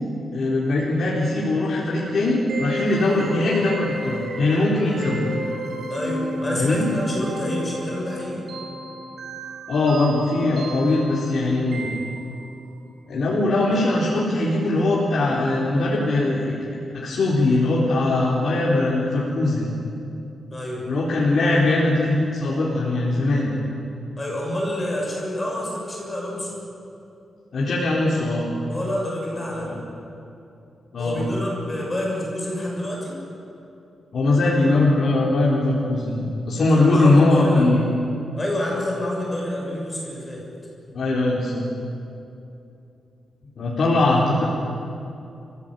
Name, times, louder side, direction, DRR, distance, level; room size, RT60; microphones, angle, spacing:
voice 1, 0.3-5.3 6.6-6.9 9.7-12.0 13.1-16.5 16.9-19.7 20.9-23.5 27.5-28.5 29.6-29.7 30.9-31.2 34.1-37.8 40.9-41.6 43.6-44.4, left 2 dB, 55° left, -6 dB, 4.1 m, -21 dB
sound 1, 2.5-12.6, equal, 65° right, 4.6 m, -33 dB
voice 2, 5.9-8.5 20.5-20.8 24.2-26.6 28.7-29.8 31.0-33.2 36.7-37.7 38.4-40.4, left 1 dB, 20° left, -2 dB, 6.7 m, -28 dB
28.5 x 16.5 x 9.2 m, 2.8 s
wide cardioid pair, 155°, 0 cm